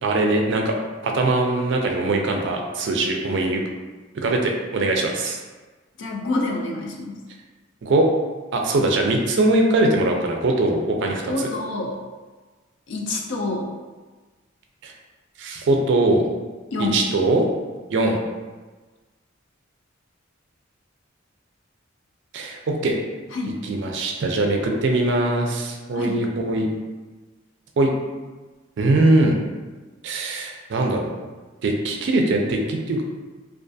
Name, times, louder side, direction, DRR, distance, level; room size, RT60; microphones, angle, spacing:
voice 1, 0.0-0.7 1.0-3.6 4.1-5.4 7.8-8.1 8.5-11.5 14.8-14.9 15.4-16.2 16.8-17.4 17.9-18.2 22.3-23.0 23.6-26.7 27.8-27.9 28.8-29.4 30.0-31.0 31.6-33.0, right 2 dB, 60° right, 2 dB, 0.4 m, -21 dB
voice 2, 6.0-7.2 11.3-12.0 12.9-13.7 16.7-17.0 23.3-23.6 25.9-26.2, left 2 dB, 60° left, 0 dB, 0.4 m, -27 dB
2.3 x 2.3 x 2.6 m, 1.3 s
head